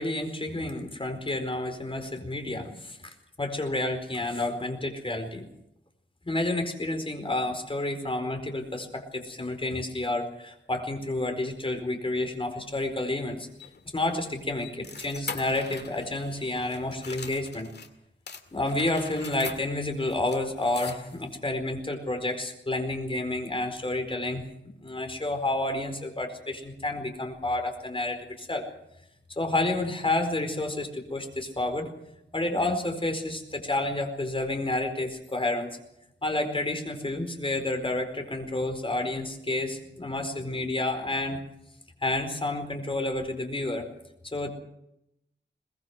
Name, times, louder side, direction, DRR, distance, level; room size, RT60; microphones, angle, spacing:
voice 1, 0.0-5.4 6.2-13.5 13.9-17.7 18.5-28.6 29.4-31.9 32.3-35.7 36.2-41.4 42.0-43.9 44.3-44.5, left 2 dB, 30° left, 6 dB, 4.5 m, -30 dB
sound 1, 13.2-17.9 18.3-21.3, left 4 dB, 60° left, 2.2 m, -42 dB
23.0 x 20.0 x 6.2 m, 0.81 s
wide cardioid pair, 125°, 19 cm